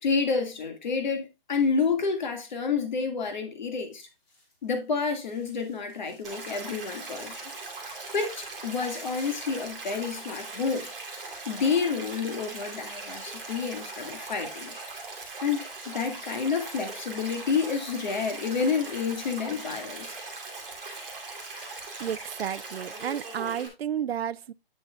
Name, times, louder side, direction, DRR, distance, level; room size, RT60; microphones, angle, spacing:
voice 1, 0.0-4.1 4.6-7.4 8.1-10.9 11.5-14.8 15.4-20.1, left 5 dB, 50° left, 2.0 m, -29 dB
sound 1, 3.7-6.5 6.8-7.0 7.4-11.6 11.9-12.1, left 1 dB, 20° left, 3.5 m, -56 dB
Stream, 6.2-23.7, right 3 dB, ahead, 0.4 m, -40 dB
voice 2, 22.0-24.5, right 9 dB, 85° right, 0.5 m, -32 dB
9.2 x 7.1 x 2.3 m
hypercardioid pair, 165°, 30 cm